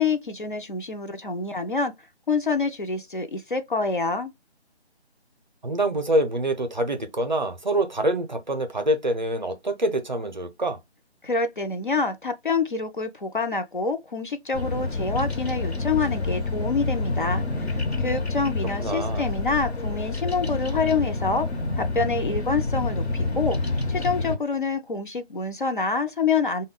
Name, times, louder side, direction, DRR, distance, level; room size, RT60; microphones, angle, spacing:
voice 1, 0.0-1.9 2.3-4.3 11.2-21.5 21.8-26.6, left 4 dB, 50° left, 0.5 m, -27 dB
voice 2, 5.6-10.8 18.8-19.3, right 1 dB, 45° right, 0.5 m, -25 dB
Bird vocalization bird call bird song, 14.5-24.4, left 3 dB, 70° left, 0.9 m, -28 dB
3.5 x 2.2 x 3.6 m
figure-of-eight pair, 155°, 34 cm